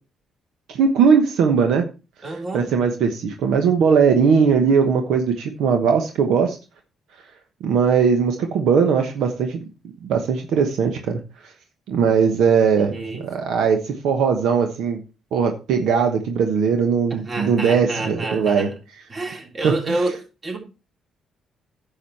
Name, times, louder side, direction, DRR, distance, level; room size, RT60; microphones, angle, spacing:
voice 1, 0.7-1.8 2.2-6.6 7.6-9.6 10.0-11.5 11.9-15.0 15.3-18.7 19.6-20.0, right 6 dB, 80° right, 1.2 m, -19 dB
voice 2, 2.2-2.7 12.8-13.2 17.1-18.7 19.1-20.2 20.4-20.6, right 2 dB, 35° right, 3.5 m, -28 dB
10.0 x 7.2 x 4.2 m
cardioid pair, 90°, 0 cm